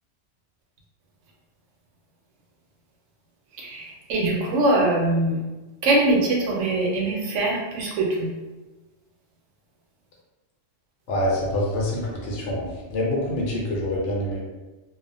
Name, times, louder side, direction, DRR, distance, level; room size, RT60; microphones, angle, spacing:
voice 1, 3.6-5.4 5.8-8.3, right 2 dB, 85° right, -2 dB, 1.0 m, -22 dB
voice 2, 11.1-14.4, left 1 dB, 75° left, -3 dB, 0.9 m, -26 dB
2.4 x 2.0 x 2.6 m, 1.1 s
omnidirectional pair, 1.2 m